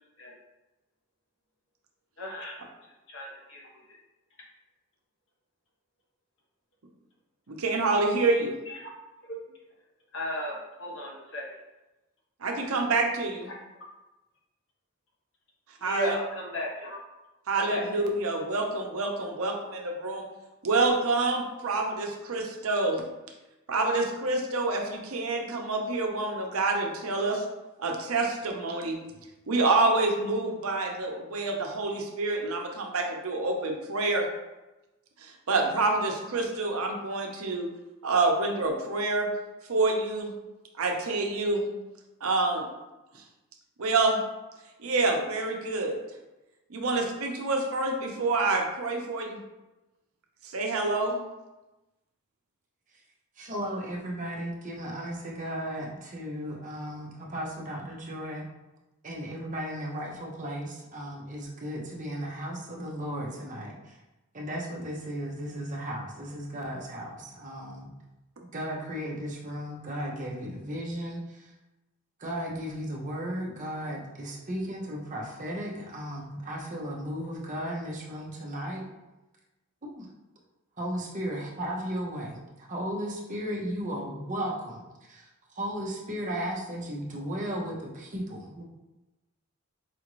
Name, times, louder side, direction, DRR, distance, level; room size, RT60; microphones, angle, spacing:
voice 1, 2.2-2.6 3.1-4.0 8.7-8.9 9.3-9.4 10.1-11.5 13.5-13.6 15.8-17.0 17.5-17.8, equal, 65° left, -2 dB, 1.1 m, -35 dB
voice 2, 7.5-8.5 12.4-13.5 15.8-16.1 17.5-20.3 20.6-23.0 23.7-27.4 27.8-29.0 29.5-34.3 35.2-37.7 38.0-39.3 39.7-40.3 40.8-41.7 42.2-42.7 43.8-44.2 44.8-46.0 46.7-49.4 50.4-51.2, right 3 dB, 85° right, 2 dB, 0.7 m, -27 dB
voice 3, 53.4-58.5 59.0-64.0 64.3-67.9 68.5-71.5 72.2-78.8 79.8-80.1 80.8-85.3 85.5-88.6, equal, 35° right, -2 dB, 0.7 m, -35 dB
5.0 x 2.5 x 3.0 m, 1.0 s
head